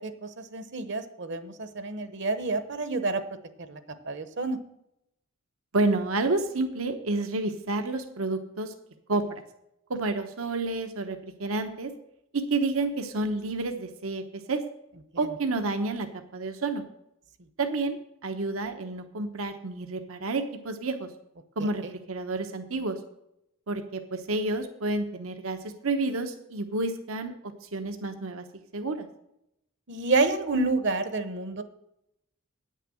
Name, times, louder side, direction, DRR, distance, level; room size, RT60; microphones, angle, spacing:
voice 1, 0.0-3.2 3.7-4.6 21.6-21.9 29.9-31.6, right 3 dB, 60° right, 10 dB, 0.9 m, -29 dB
voice 2, 5.7-8.7 9.1-9.4 9.9-11.9 12.3-14.6 15.2-16.1 16.3-16.8 17.6-21.1 21.6-23.0 23.7-28.4 28.7-29.1, right 2 dB, 85° right, 6 dB, 1.0 m, -30 dB
9.2 x 6.6 x 7.7 m, 0.82 s
head